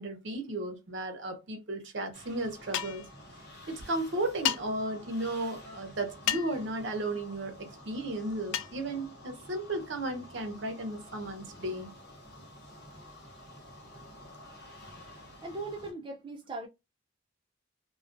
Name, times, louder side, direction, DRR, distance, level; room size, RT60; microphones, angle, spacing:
voice 1, 0.0-3.1 3.7-11.9, right 1 dB, 70° right, 0.7 m, -34 dB
sound 1, 2.1-15.9, left 1 dB, 55° left, 1.0 m, -50 dB
sound 2, 2.7-3.1 4.4-4.6 6.3-6.6 8.5-8.7, left 10 dB, 80° left, 0.3 m, -30 dB
voice 2, 15.4-16.7, right 2 dB, 25° right, 0.3 m, -39 dB
2.3 x 2.2 x 2.4 m
head